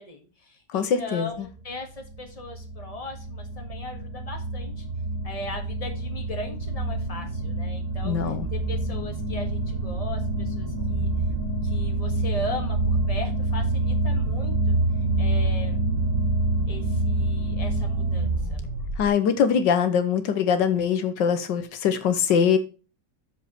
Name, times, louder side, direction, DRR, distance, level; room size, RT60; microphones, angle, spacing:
voice 1, 0.0-4.9 5.2-11.1 11.6-14.8 15.2-15.8 16.7-18.6, left 1 dB, 20° left, 3 dB, 1.7 m, -38 dB
voice 2, 0.7-1.5 8.0-8.5 19.0-22.6, left 7 dB, 80° left, 10 dB, 1.6 m, -23 dB
sound 1, 1.6-19.1, right 2 dB, 85° right, 3.0 m, -27 dB
6.7 x 4.9 x 6.0 m, 0.34 s
omnidirectional pair, 1.9 m